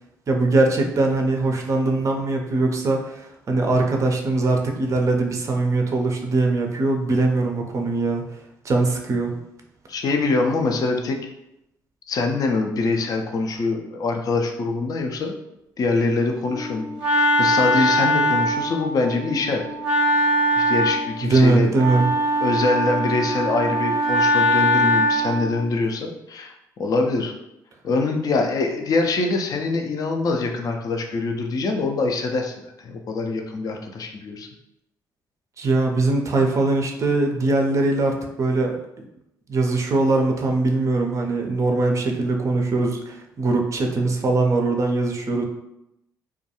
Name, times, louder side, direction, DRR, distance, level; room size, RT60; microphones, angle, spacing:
voice 1, 0.3-8.2 8.6-9.3 21.2-22.1 35.6-39.0 39.5-45.4, right 2 dB, 35° right, 2 dB, 0.4 m, -21 dB
voice 2, 9.9-11.2 12.1-15.4 15.8-19.6 20.6-21.7 22.4-26.5 26.8-27.3 27.8-34.5, left 3 dB, 40° left, 3 dB, 0.4 m, -24 dB
Wind instrument woodwind instrument, 16.5-25.6, equal, 5° right, 0.8 m, -22 dB
2.3 x 2.2 x 2.8 m, 0.86 s
hypercardioid pair, 50°, 10 cm